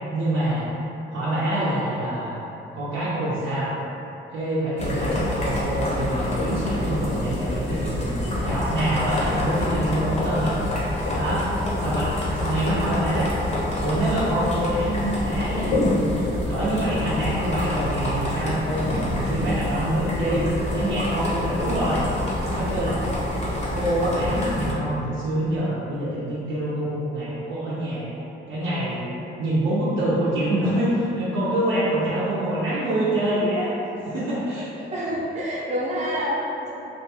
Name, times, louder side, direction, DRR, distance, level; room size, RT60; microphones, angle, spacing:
voice 1, 0.1-0.7 1.1-2.4 2.7-3.7 4.3-10.6 11.1-11.5 11.8-13.3 13.8-20.4 20.7-22.0 22.4-23.1 23.7-28.1 28.5-29.0 29.4-34.7, right 1 dB, 80° right, -10 dB, 0.6 m, -25 dB
sound 1, 4.8-24.7, left 1 dB, 35° left, 0.6 m, -27 dB
voice 2, 34.8-36.7, equal, 35° right, -6 dB, 0.7 m, -27 dB
2.4 x 2.3 x 2.8 m, 2.9 s
cardioid pair, 90°, 20 cm